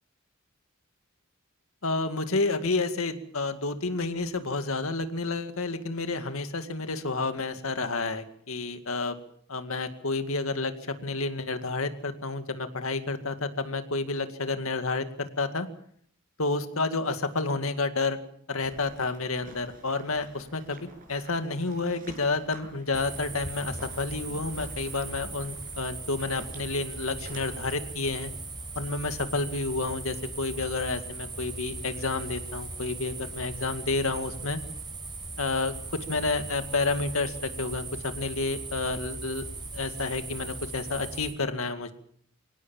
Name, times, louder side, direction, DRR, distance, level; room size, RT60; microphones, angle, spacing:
voice 1, 1.8-9.2 9.5-15.7 16.4-18.2 18.5-28.3 28.8-34.6 35.4-39.4 39.7-41.9, left 3 dB, 85° left, 8 dB, 2.2 m, -30 dB
sound 1, 18.6-27.8, right 2 dB, 40° right, 7.0 m, -51 dB
sound 2, 22.9-41.3, right 3 dB, 20° right, 5.5 m, -39 dB
24.5 x 18.0 x 7.2 m, 0.64 s
head